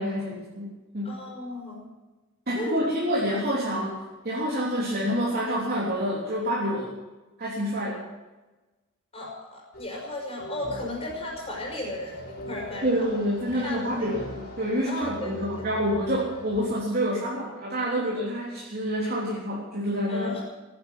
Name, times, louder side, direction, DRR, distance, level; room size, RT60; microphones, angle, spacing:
voice 1, 0.0-1.1 2.5-4.0 4.2-6.9 7.4-8.0 12.8-20.4, equal, 45° right, -5 dB, 3.5 m, -27 dB
voice 2, 1.0-1.9 2.5-2.8 9.1-13.1 13.5-14.1 14.8-15.7 20.1-20.4, left 1 dB, 30° left, -2 dB, 5.6 m, -35 dB
sound 1, 9.7-16.7, left 1 dB, 50° left, 5.0 m, -42 dB
16.5 x 11.5 x 7.6 m, 1.1 s
head